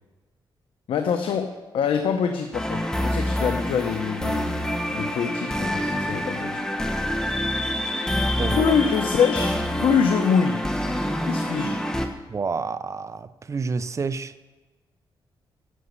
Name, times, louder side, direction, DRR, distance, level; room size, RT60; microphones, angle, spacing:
voice 1, 0.9-1.5 1.7-4.5 4.9-6.7 8.5-10.6 11.2-11.8, left 7 dB, 90° left, 6 dB, 0.9 m, -24 dB
sound 1, 2.5-12.1, left 1 dB, 5° left, 1.2 m, -26 dB
voice 2, 12.3-14.3, right 4 dB, 35° right, 13 dB, 0.6 m, -29 dB
11.0 x 8.0 x 8.1 m, 1.2 s
cardioid pair, 115°, 9 cm